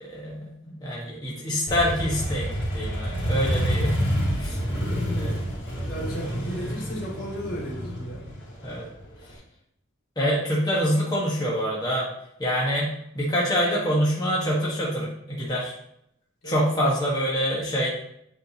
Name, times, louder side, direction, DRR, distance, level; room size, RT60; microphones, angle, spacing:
voice 1, 0.0-4.0 4.3-4.6 5.1-5.5 6.2-6.3 8.6-8.9 10.2-12.1 12.4-12.9 13.1-15.7 16.4-17.9, equal, 20° left, -5 dB, 1.3 m, -26 dB
Motorcycle, 1.7-9.3, equal, 55° left, 2.6 m, -28 dB
voice 2, 5.8-8.3 16.4-16.6, equal, 75° left, -5 dB, 2.7 m, -35 dB
8.2 x 5.0 x 2.9 m, 0.74 s
head